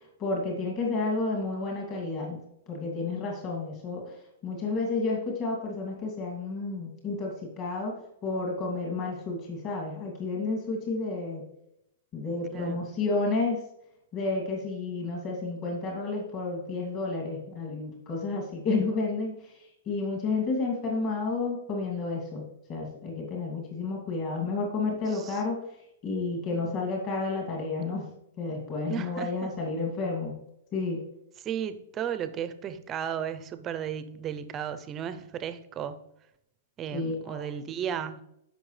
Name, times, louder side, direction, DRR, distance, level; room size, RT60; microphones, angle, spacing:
voice 1, 0.2-2.4 2.7-4.0 4.4-8.0 8.2-11.4 12.1-13.6 14.1-19.3 19.9-22.4 22.7-25.6 26.0-28.1 28.4-30.3 30.7-31.0 36.9-37.5, left 3 dB, 30° left, 2.5 m, -31 dB
voice 2, 12.5-12.8 25.1-25.4 28.9-29.5 31.4-36.0 36.8-38.2, right 8 dB, 20° right, 0.6 m, -34 dB
14.5 x 5.7 x 3.3 m
hypercardioid pair, 150°, 0 cm